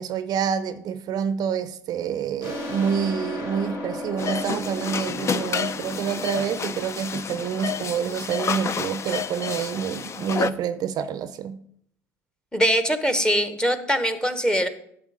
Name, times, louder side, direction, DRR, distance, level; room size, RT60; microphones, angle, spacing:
voice 1, 0.0-11.6, right 8 dB, 50° right, 0.5 m, -27 dB
sound 1, 2.4-7.7, left 1 dB, 65° left, 3.7 m, -35 dB
sound 2, 4.2-10.5, left 6 dB, 35° left, 0.5 m, -30 dB
voice 2, 12.5-14.7, equal, 10° left, 1.1 m, -22 dB
11.0 x 4.8 x 4.9 m
hypercardioid pair, 70°, 9 cm